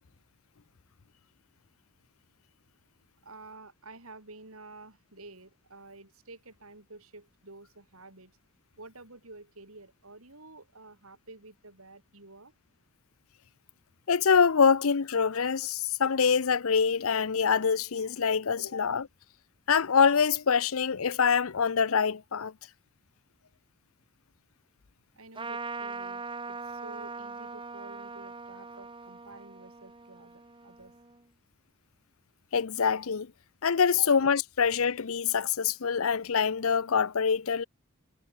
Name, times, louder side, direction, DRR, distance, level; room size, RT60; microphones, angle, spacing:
voice 1, 3.2-8.4 8.8-12.5 18.6-18.7 25.1-30.9 33.9-34.1, right 2 dB, 80° right, 5.1 m, -50 dB
voice 2, 14.1-19.0 19.7-22.5 32.5-33.3 33.6-37.6, left 6 dB, 75° left, 0.7 m, -25 dB
Trumpet, 25.3-31.2, right 4 dB, 25° right, 1.6 m, -41 dB
head